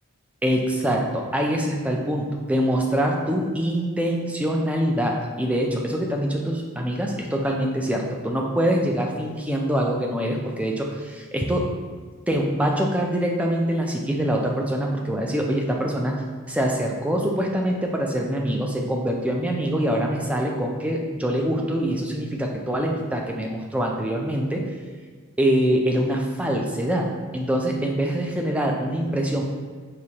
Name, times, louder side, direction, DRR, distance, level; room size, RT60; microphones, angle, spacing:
voice 1, 0.4-11.7 12.3-16.2 16.5-24.7 25.4-27.1 27.3-29.4, equal, 5° right, 0 dB, 0.3 m, -24 dB
4.9 x 3.0 x 2.8 m, 1.5 s
head